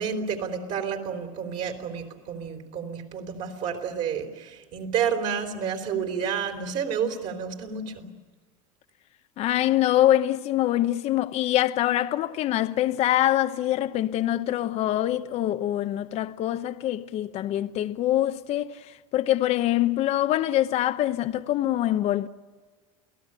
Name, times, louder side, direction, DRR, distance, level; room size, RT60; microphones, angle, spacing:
voice 1, 0.0-8.1, right 7 dB, 45° right, 4.1 m, -30 dB
voice 2, 9.4-22.3, left 13 dB, 40° left, 0.9 m, -24 dB
29.0 x 18.0 x 9.0 m
supercardioid pair, 140°, 17 cm